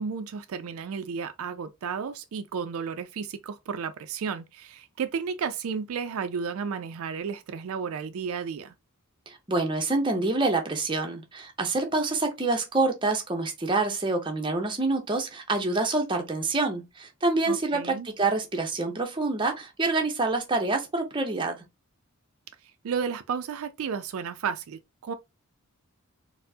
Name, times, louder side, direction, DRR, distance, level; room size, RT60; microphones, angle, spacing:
voice 1, 0.0-8.7 17.5-18.1 22.8-25.1, right 6 dB, 70° right, 0.4 m, -33 dB
voice 2, 9.3-21.6, right 3 dB, 20° right, 0.6 m, -27 dB
4.2 x 2.0 x 2.6 m
head